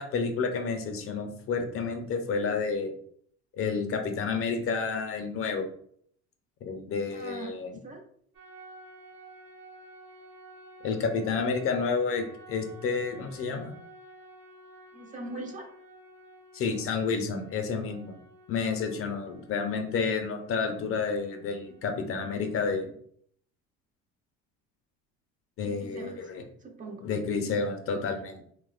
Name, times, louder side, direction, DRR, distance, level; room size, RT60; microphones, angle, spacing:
voice 1, 0.0-2.9 3.6-5.7 6.6-7.8 10.8-13.7 16.5-18.2 18.5-22.9 25.6-26.4 27.0-28.4, left 5 dB, 45° left, 5 dB, 0.5 m, -30 dB
voice 2, 7.1-7.5 7.8-8.0 14.9-15.6 25.6-26.2 26.6-27.0, right 2 dB, 25° right, 3 dB, 0.4 m, -41 dB
sound 1, 8.3-22.8, right 1 dB, 85° right, 0.8 m, -52 dB
2.8 x 2.1 x 2.3 m, 0.64 s
supercardioid pair, 85°, 32 cm